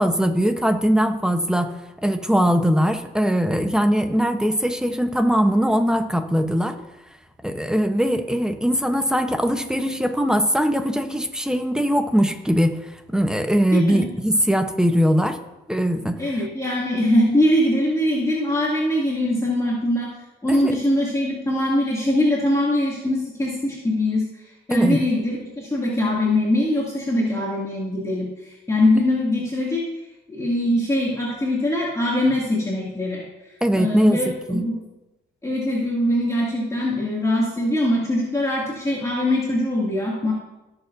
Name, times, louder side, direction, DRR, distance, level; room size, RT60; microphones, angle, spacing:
voice 1, 0.0-6.8 7.4-12.8 13.1-15.4 15.7-16.2 20.5-20.7 24.7-25.0 33.6-34.2 34.5-34.6, equal, 5° right, 7 dB, 0.9 m, -21 dB
voice 2, 16.2-20.1 20.4-24.3 24.7-28.3 28.7-29.8 30.3-33.2 33.8-34.8 35.4-40.3, left 1 dB, 15° left, -6 dB, 2.5 m, -22 dB
17.5 x 7.0 x 2.7 m, 1.0 s
cardioid pair, 90°, 20 cm